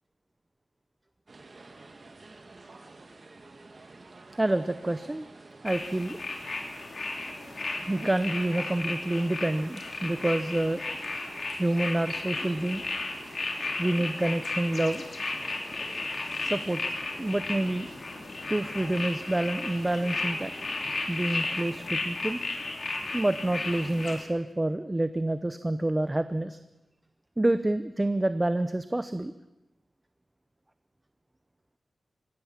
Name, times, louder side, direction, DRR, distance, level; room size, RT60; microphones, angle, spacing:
sound 1, 1.3-21.1, right 3 dB, 45° right, 2.0 m, -50 dB
voice 1, 4.4-5.3 5.6-6.2 7.8-10.8 11.6-12.8 13.8-15.0 16.4-16.8 17.2-17.9 18.5-20.5 21.1-22.4 23.1-26.6 27.4-29.3, right 1 dB, 20° right, 11 dB, 0.7 m, -28 dB
sound 2, 5.6-24.2, left 3 dB, 50° left, 3.0 m, -34 dB
25.0 x 16.0 x 7.4 m, 0.98 s
wide cardioid pair, 115°, 0 cm